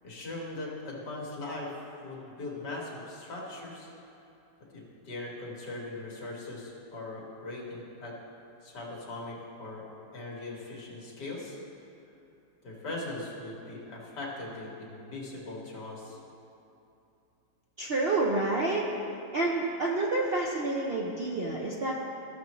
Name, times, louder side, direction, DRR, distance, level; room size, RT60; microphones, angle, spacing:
voice 1, 0.0-3.9 4.7-8.1 8.6-9.8 10.1-11.6 12.6-16.2, left 2 dB, 75° left, -3 dB, 2.3 m, -40 dB
voice 2, 17.8-18.9 19.3-21.9, right 2 dB, 55° right, -3 dB, 0.6 m, -28 dB
14.5 x 6.8 x 3.1 m, 2.7 s
omnidirectional pair, 1.8 m